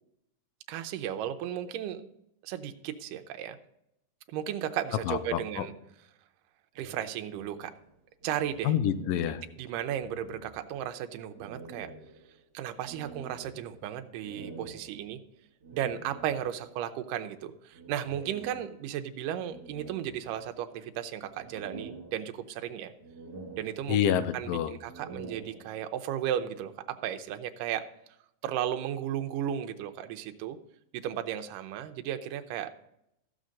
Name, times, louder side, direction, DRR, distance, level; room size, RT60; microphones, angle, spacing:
voice 1, 0.7-2.1 2.4-3.6 4.3-5.7 6.8-7.7 8.2-8.7 9.6-11.9 12.5-15.2 15.7-22.9 23.6-24.0 24.3-27.8 28.4-30.6 30.9-32.7, right 10 dB, 80° right, 7 dB, 2.2 m, -35 dB
voice 2, 5.1-5.7 8.6-9.4 23.9-24.7, left 9 dB, 85° left, 12 dB, 2.3 m, -28 dB
sound 1, 6.7-9.6 9.8-10.9 11.3-16.8 17.7-19.0 19.5-20.8 21.2-22.7 23.0-24.3 24.7-26.1, right 3 dB, 55° right, 2.1 m, -48 dB
14.5 x 6.3 x 3.9 m, 0.80 s
omnidirectional pair, 3.9 m